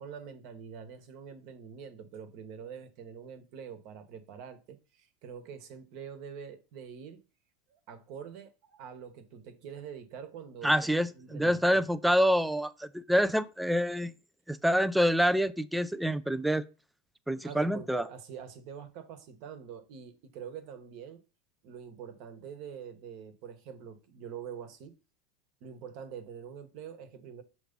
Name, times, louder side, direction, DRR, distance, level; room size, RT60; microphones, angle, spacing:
voice 1, 0.0-7.2 7.7-11.9 17.4-21.2 21.6-24.9 25.6-27.4, right 7 dB, 50° right, 1.1 m, -45 dB
voice 2, 10.6-14.1 14.5-16.6 17.3-18.1, equal, ahead, 0.3 m, -27 dB
6.8 x 3.0 x 5.2 m
supercardioid pair, 160°, 0 cm